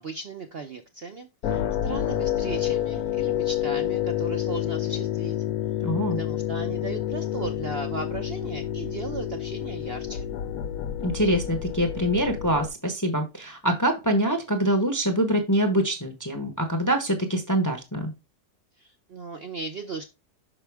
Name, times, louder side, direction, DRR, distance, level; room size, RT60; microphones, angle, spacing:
voice 1, 0.0-5.4 6.2-10.3 18.8-20.1, right 4 dB, 70° right, 6 dB, 0.5 m, -36 dB
sound 1, 1.4-12.7, left 11 dB, 70° left, 0.9 m, -29 dB
voice 2, 5.8-6.2 11.0-18.1, right 1 dB, 15° left, 6 dB, 0.7 m, -24 dB
5.8 x 5.5 x 3.4 m, 0.26 s
omnidirectional pair, 1.9 m